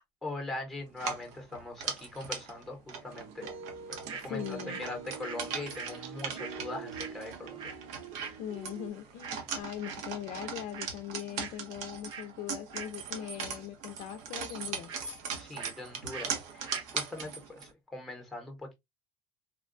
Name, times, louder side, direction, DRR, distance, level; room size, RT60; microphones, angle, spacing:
voice 1, 0.2-3.5 3.9-7.8 15.4-18.7, left 2 dB, ahead, 0.9 m, -41 dB
sound 1, 0.9-17.7, right 6 dB, 70° right, 1.0 m, -40 dB
sound 2, 3.1-8.9, right 5 dB, 90° right, 0.6 m, -45 dB
sound 3, 4.1-4.3 4.6-7.8 8.1-8.4 9.2-9.5 9.8-10.1 10.4-10.9 11.2-11.6 12.1-12.3 12.7-13.5 13.7-15.0 15.6-15.8 16.1-16.3 16.6-16.9, right 6 dB, 40° right, 0.6 m, -44 dB
voice 2, 4.2-4.8 8.4-14.9, left 11 dB, 60° left, 0.5 m, -40 dB
3.6 x 2.3 x 2.4 m
cardioid pair, 160°, 12 cm